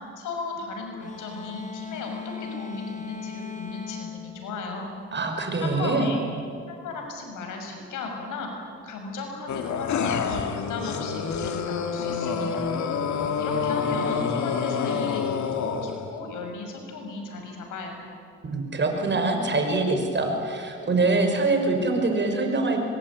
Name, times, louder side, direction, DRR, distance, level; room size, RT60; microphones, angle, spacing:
voice 1, 0.2-4.9 5.6-6.2 6.7-8.5 8.8-12.7 13.4-15.2 15.5-18.1, left 3 dB, 90° left, 3 dB, 6.4 m, -36 dB
sound 1, 1.0-5.5, left 6 dB, 25° left, 3.2 m, -38 dB
voice 2, 5.1-6.1 18.4-22.9, right 3 dB, 35° right, 4 dB, 5.8 m, -24 dB
sound 2, 9.5-16.1, left 6 dB, 70° left, 2.4 m, -27 dB
25.5 x 23.0 x 9.6 m, 2.4 s
cardioid pair, 90°, 30 cm